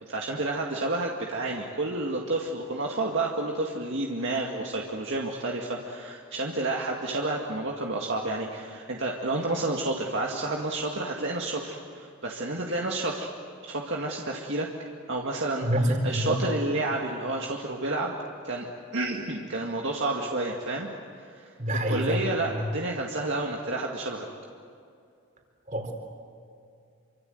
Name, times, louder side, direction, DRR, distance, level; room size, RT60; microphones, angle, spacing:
voice 1, 0.1-13.3 13.6-14.7 15.1-15.7 16.0-18.1 18.4-18.7 18.9-20.9 21.2-21.5 21.9-24.3, right 2 dB, 55° right, -1 dB, 2.1 m, -30 dB
voice 2, 15.6-16.4 21.6-22.6 25.7-25.9, equal, 35° right, 3 dB, 4.4 m, -27 dB
28.5 x 25.5 x 8.0 m, 2.5 s
head